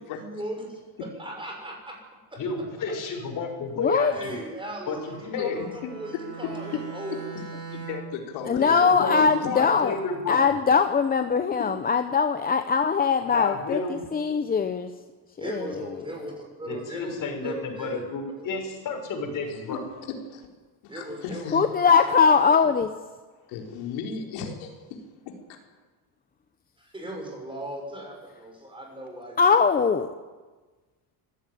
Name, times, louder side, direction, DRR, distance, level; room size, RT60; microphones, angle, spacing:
voice 1, 0.0-2.0 2.3-2.4 4.1-7.3 15.4-17.1 17.4-18.0 18.4-18.6 20.9-22.8 26.8-29.4, right 1 dB, 10° right, 1 dB, 6.5 m, -38 dB
voice 2, 2.4-4.3 4.9-5.6 8.6-10.4 13.2-14.0 16.7-19.8, left 4 dB, 45° left, 4 dB, 6.0 m, -31 dB
voice 3, 3.8-4.1 8.5-10.0 10.3-14.9 15.4-15.9 21.5-22.9 29.4-30.1, left 5 dB, 20° left, 8 dB, 0.8 m, -21 dB
Bowed string instrument, 4.8-8.2, right 5 dB, 30° right, 4.2 m, -41 dB
voice 4, 7.7-9.2 19.5-19.8 20.1-20.5 20.8-21.6 23.5-25.6, left 6 dB, 80° left, 2 dB, 4.3 m, -36 dB
25.0 x 16.0 x 9.3 m, 1.3 s
cardioid pair, 150°, 46 cm